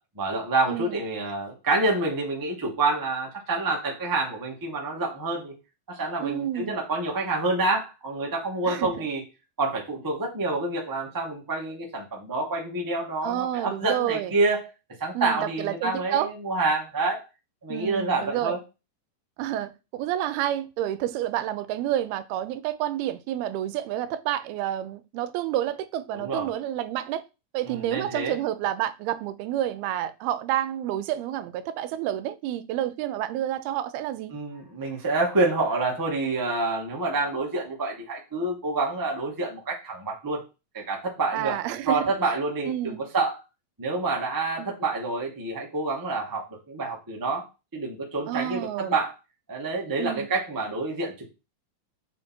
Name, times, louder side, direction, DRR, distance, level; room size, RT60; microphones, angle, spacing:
voice 1, 0.1-5.5 5.9-9.2 9.6-14.7 15.0-17.2 17.6-18.6 26.1-26.5 27.7-28.3 34.3-40.4 40.7-41.6 41.8-43.3 43.8-47.4 47.7-49.1 49.5-51.3, right 3 dB, 10° right, 0.9 m, -27 dB
voice 2, 0.7-1.0 6.2-6.8 8.7-9.1 13.2-14.4 15.1-16.3 17.7-18.6 19.4-27.2 27.5-34.3 41.3-42.1 42.7-43.0 44.6-44.7 48.3-48.9 50.0-50.3, right 12 dB, 85° right, 2.6 m, -29 dB
7.1 x 5.4 x 4.5 m
omnidirectional pair, 4.4 m